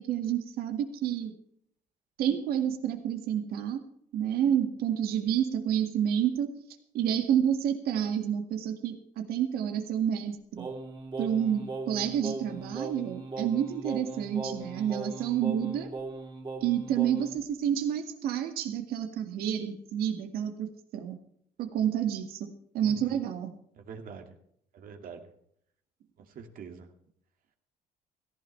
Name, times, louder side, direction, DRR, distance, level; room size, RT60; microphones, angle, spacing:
voice 1, 0.0-1.3 2.2-3.8 4.1-6.6 6.9-10.7 11.2-15.9 16.6-20.7 20.9-21.2 21.6-23.5, right 9 dB, 80° right, 6 dB, 2.0 m, -29 dB
Singing, 10.6-17.4, right 3 dB, 30° right, 2.9 m, -39 dB
voice 2, 22.8-23.2 23.8-24.4 24.7-25.3 26.2-26.9, right 5 dB, 65° right, 4 dB, 2.3 m, -45 dB
17.5 x 15.0 x 3.4 m, 0.69 s
cardioid pair, 100°, 16 cm